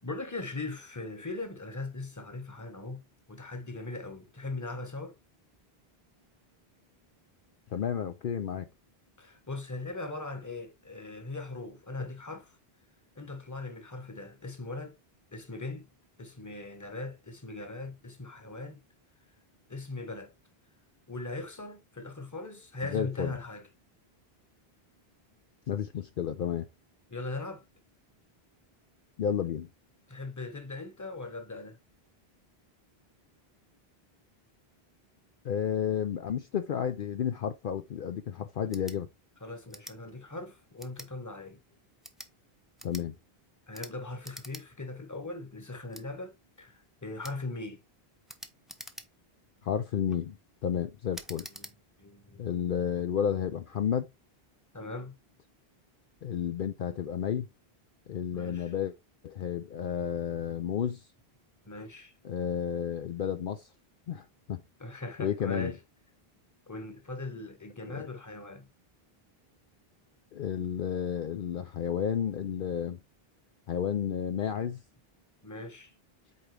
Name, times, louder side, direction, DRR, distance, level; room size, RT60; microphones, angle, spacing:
voice 1, 0.0-3.0 3.3-5.2 9.2-12.6 13.2-15.0 15.3-15.9 16.2-18.8 19.7-20.3 21.1-23.7 27.1-27.6 30.1-31.8 39.4-41.6 43.7-47.8 51.5-52.4 54.7-55.1 58.3-58.7 61.6-62.1 64.8-65.8 66.7-68.7 75.4-75.9, left 2 dB, 20° left, 1.0 m, -40 dB
voice 2, 7.7-8.7 22.8-23.3 25.7-26.7 29.2-29.7 35.4-39.1 42.8-43.1 49.6-50.4 50.6-51.5 52.4-54.1 56.2-57.5 58.1-58.9 59.2-61.0 62.2-63.7 64.1-64.6 65.2-65.7 67.9-68.0 70.3-73.0 73.7-74.8, left 8 dB, 60° left, 0.7 m, -31 dB
sound 1, 38.7-39.0 39.7-40.0 40.8-41.1 41.9-42.3 42.8-43.1 43.7-43.9 44.2-44.6 45.0-45.1 45.9-46.1 47.2-47.4 48.3-49.3 49.9-50.2 51.1-51.7, equal, ahead, 0.6 m, -46 dB
8.5 x 3.6 x 3.2 m
omnidirectional pair, 1.0 m